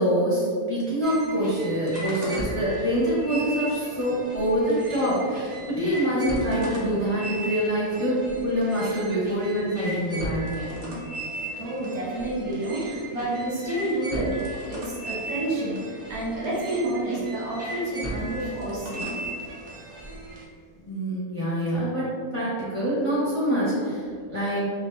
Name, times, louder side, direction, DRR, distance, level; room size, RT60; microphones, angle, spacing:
voice 1, 0.0-10.8 20.8-24.7, equal, 25° left, -10 dB, 1.0 m, -25 dB
sound 1, 1.0-20.4, right 1 dB, 40° right, 0.6 m, -36 dB
voice 2, 11.5-14.4 14.6-19.1, right 1 dB, 75° right, -6 dB, 1.6 m, -29 dB
5.7 x 2.4 x 2.6 m, 2.1 s
omnidirectional pair, 1.6 m